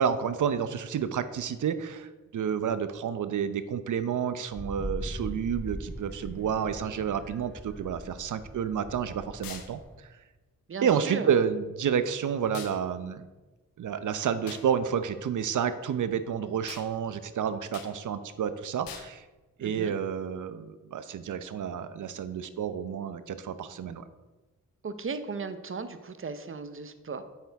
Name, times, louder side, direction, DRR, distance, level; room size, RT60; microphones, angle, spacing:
voice 1, 0.0-9.8 10.8-13.3 13.8-19.2 19.6-24.1, right 7 dB, 60° right, 12 dB, 0.8 m, -30 dB
Wind, 4.5-10.0, equal, ahead, 0.8 m, -40 dB
sound 1, 9.4-9.7 12.5-12.8 14.5-14.7 16.7-16.9 17.7-17.9 18.9-19.1, left 8 dB, 90° left, 1.1 m, -42 dB
voice 2, 10.7-11.3 19.6-19.9 24.8-27.2, right 4 dB, 40° right, 11 dB, 0.9 m, -36 dB
8.7 x 8.1 x 3.6 m, 1.2 s
cardioid pair, 60°, 34 cm